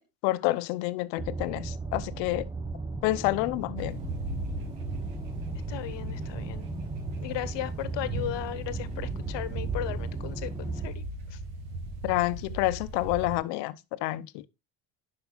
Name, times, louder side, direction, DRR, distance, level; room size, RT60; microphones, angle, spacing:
voice 1, 0.2-2.5 3.0-4.0 12.0-14.4, left 18 dB, 80° left, 0.9 m, -28 dB
sound 1, 1.2-10.9, right 3 dB, 10° right, 0.9 m, -37 dB
sound 2, 3.8-13.4, right 2 dB, 80° right, 2.4 m, -37 dB
voice 2, 5.7-6.7 7.2-11.4, left 13 dB, 60° left, 1.4 m, -36 dB
10.5 x 5.8 x 3.9 m
supercardioid pair, 85°, 49 cm